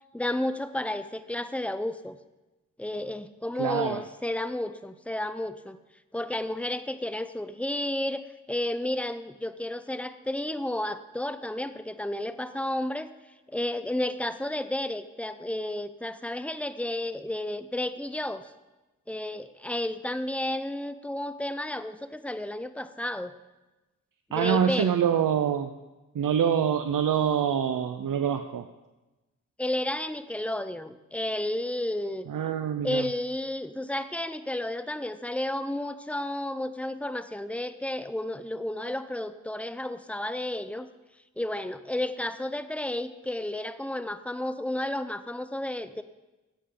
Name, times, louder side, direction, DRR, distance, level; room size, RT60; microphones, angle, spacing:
voice 1, 0.1-2.2 2.8-5.8 6.1-13.1 13.5-18.5 19.1-23.3 24.3-25.0 27.5-27.7 29.6-32.3 32.8-40.9 41.4-46.0, left 1 dB, 5° left, 12 dB, 0.6 m, -32 dB
voice 2, 3.6-4.0 24.3-25.7 26.1-28.6 32.3-33.1, right 8 dB, 80° right, 8 dB, 0.6 m, -25 dB
15.5 x 8.4 x 3.8 m, 1.1 s
cardioid pair, 55°, 32 cm